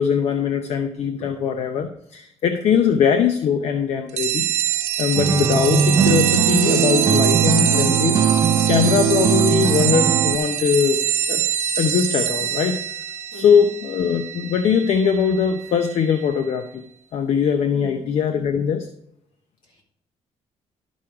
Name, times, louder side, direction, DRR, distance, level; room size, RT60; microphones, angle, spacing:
voice 1, 0.0-4.5 5.0-8.2 8.7-11.0 11.3-11.4 11.8-12.8 13.3-16.8 17.1-18.9, left 7 dB, 65° left, 7 dB, 0.7 m, -21 dB
sound 1, 4.2-16.3, right 10 dB, 75° right, 1.0 m, -24 dB
sound 2, 5.2-10.4, right 7 dB, 30° right, 0.5 m, -20 dB
voice 2, 13.3-13.6 17.7-18.1 19.7-19.8, left 2 dB, 45° left, -1 dB, 4.1 m, -40 dB
12.0 x 6.2 x 4.7 m, 0.75 s
cardioid pair, 175°, 12 cm